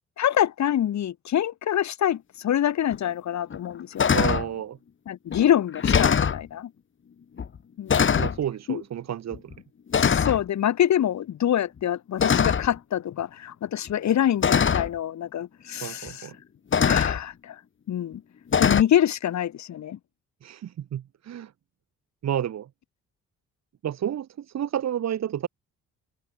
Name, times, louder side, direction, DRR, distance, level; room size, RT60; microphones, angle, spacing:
voice 1, 0.2-4.1 5.1-6.7 7.8-8.1 8.7-8.8 9.9-16.3 16.8-17.6 17.9-18.2 18.6-20.0, left 10 dB, 65° left, 3.3 m, -25 dB
sound 1, 2.9-3.0 3.5-3.7 4.0-4.5 5.3-5.4 5.7-6.4 7.4-7.6 7.9-8.4 9.3-9.6 9.9-10.4 12.2-12.8 13.9-14.0 14.4-14.9 16.1-16.2 16.7-17.2 18.5-18.8, left 7 dB, 40° left, 1.9 m, -22 dB
voice 2, 4.1-4.8 8.2-9.5 15.8-16.3 20.4-21.5 22.2-22.7 23.8-25.5, right 10 dB, 60° right, 2.1 m, -30 dB
open air
cardioid pair, 90°, 30 cm